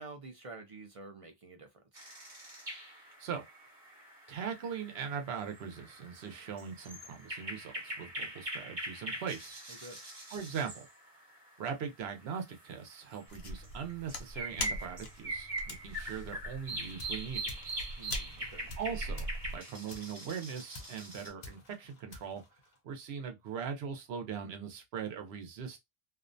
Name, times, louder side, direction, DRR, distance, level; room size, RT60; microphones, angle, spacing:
voice 1, 0.0-2.0 9.7-10.0 18.0-18.7, right 3 dB, 55° right, 0.4 m, -49 dB
sound 1, 1.9-11.6 12.1-12.2 12.5-21.3, right 1 dB, 35° right, 1.1 m, -43 dB
voice 2, 4.3-9.6 10.3-10.9 11.6-17.4 18.8-22.4 22.8-25.8, right 7 dB, 80° right, 0.9 m, -40 dB
sound 2, 13.3-19.6, left 1 dB, 75° left, 0.9 m, -42 dB
sound 3, 16.7-23.2, left 3 dB, 50° left, 0.6 m, -53 dB
2.5 x 2.1 x 2.5 m
omnidirectional pair, 1.1 m